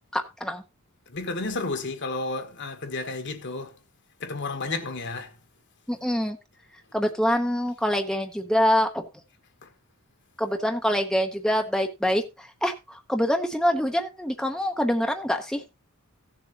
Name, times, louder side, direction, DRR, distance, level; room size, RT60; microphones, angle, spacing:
voice 1, 0.1-0.6 5.9-6.4 6.9-9.1 10.4-15.6, equal, ahead, 0.9 m, -25 dB
voice 2, 1.1-3.8 4.2-5.3 9.6-9.7, left 3 dB, 55° left, 1.5 m, -32 dB
16.5 x 7.2 x 2.9 m
head